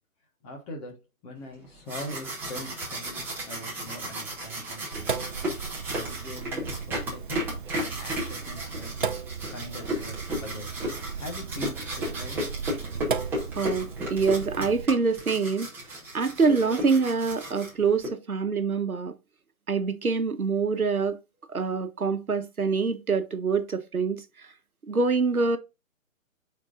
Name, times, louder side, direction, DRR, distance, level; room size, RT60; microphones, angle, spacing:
voice 1, 0.4-5.3 5.6-7.4 7.8-9.1 9.5-10.8 11.1-12.5 12.8-13.0, left 1 dB, 15° left, 1.3 m, -42 dB
sound 1, 1.6-18.1, equal, 5° right, 1.3 m, -34 dB
Sink (filling or washing), 4.9-14.9, right 6 dB, 40° right, 0.5 m, -36 dB
voice 2, 13.5-15.7 16.1-19.1 19.7-21.2 21.5-24.2 24.8-25.6, right 4 dB, 85° right, 1.3 m, -25 dB
8.5 x 4.5 x 2.5 m
figure-of-eight pair, 145°, 42 cm